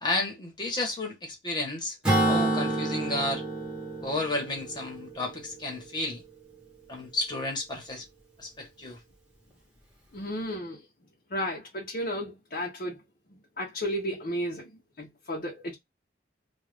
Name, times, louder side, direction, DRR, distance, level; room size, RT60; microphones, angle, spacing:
voice 1, 0.0-1.9 2.2-3.4 4.0-6.2 6.9-8.0 8.4-9.0, left 2 dB, 25° left, 1.1 m, -32 dB
Acoustic guitar / Strum, 2.0-5.7, right 1 dB, 5° right, 1.0 m, -28 dB
voice 2, 10.1-10.8 11.3-13.0 13.6-15.7, equal, 50° left, 0.7 m, -33 dB
2.4 x 2.4 x 3.3 m
head